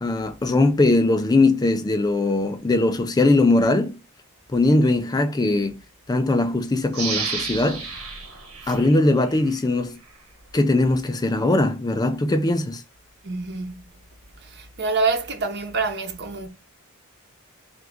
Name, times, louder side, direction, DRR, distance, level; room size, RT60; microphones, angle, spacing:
voice 1, 0.0-4.0 4.5-5.8 6.1-7.9 8.7-10.0 10.5-12.8, left 2 dB, 20° left, 0.4 m, -20 dB
sound 1, 6.9-9.6 10.1-10.2, right 5 dB, 75° right, 1.3 m, -32 dB
voice 2, 13.2-13.8 14.4-16.5, right 4 dB, 50° right, 1.0 m, -26 dB
3.9 x 3.4 x 3.5 m
head